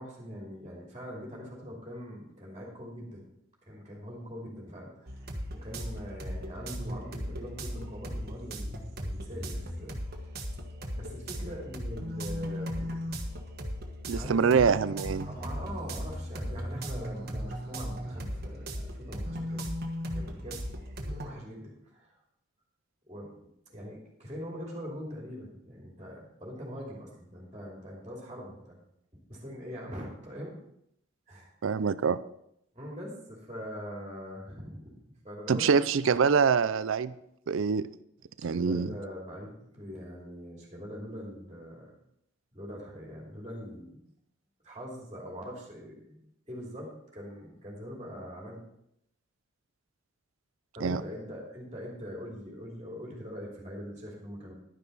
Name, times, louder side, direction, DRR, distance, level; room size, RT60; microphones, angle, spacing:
voice 1, 0.0-3.2 3.7-5.1 5.5-10.0 10.9-13.1 14.1-14.5 15.2-19.8 20.1-20.7 21.0-22.1 23.1-23.3 23.7-28.8 29.3-30.5 31.3-31.5 32.7-35.0 35.2-35.7 38.4-41.9 42.5-44.0 44.6-48.6 50.7-54.5, equal, 25° right, -3 dB, 2.8 m, -42 dB
sound 1, 5.1-21.3, equal, 50° right, 1.4 m, -37 dB
voice 2, 14.1-15.3 31.6-32.2 35.5-37.1 37.5-37.9 38.4-38.9 50.8-51.0, right 5 dB, 85° right, 15 dB, 0.5 m, -25 dB
11.5 x 10.0 x 4.1 m, 0.76 s
head